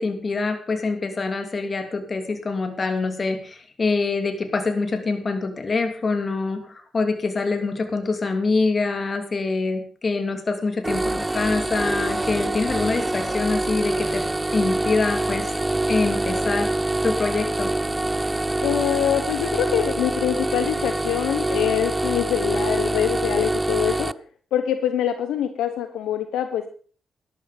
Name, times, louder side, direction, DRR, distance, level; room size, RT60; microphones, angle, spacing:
voice 1, 0.0-14.2 14.5-15.5 15.9-16.7 17.0-17.7, left 3 dB, 45° left, 7 dB, 2.9 m, -25 dB
sound 1, 10.8-24.1, right 2 dB, 15° right, 0.5 m, -25 dB
voice 2, 18.6-24.1 24.5-26.7, left 10 dB, 90° left, 9 dB, 1.0 m, -24 dB
12.5 x 12.0 x 5.2 m, 0.42 s
cardioid pair, 60°, 0 cm